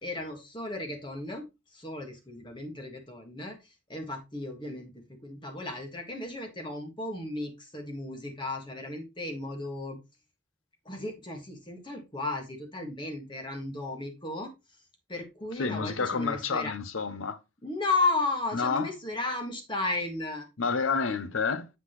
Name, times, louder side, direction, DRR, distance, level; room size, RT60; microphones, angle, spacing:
voice 1, 0.0-1.5 1.7-3.6 3.9-10.0 10.9-14.5 15.1-16.7 17.6-20.5, left 2 dB, 25° left, 1.7 m, -34 dB
voice 2, 15.6-17.4 18.5-18.9 20.6-21.7, left 5 dB, 75° left, 0.7 m, -29 dB
8.0 x 5.6 x 3.1 m
head